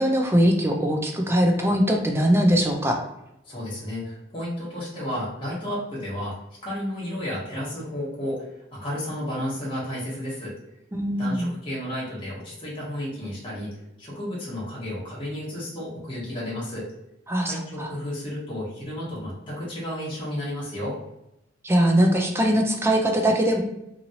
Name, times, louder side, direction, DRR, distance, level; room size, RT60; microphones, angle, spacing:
voice 1, 0.0-3.0 10.9-11.5 17.3-17.9 21.6-23.6, equal, 15° right, 2 dB, 0.4 m, -21 dB
voice 2, 3.5-6.3 6.6-8.4 8.7-10.5 11.2-13.7 14.0-16.9 17.4-21.0, equal, 25° left, -8 dB, 1.1 m, -32 dB
3.0 x 2.6 x 2.7 m, 0.87 s
head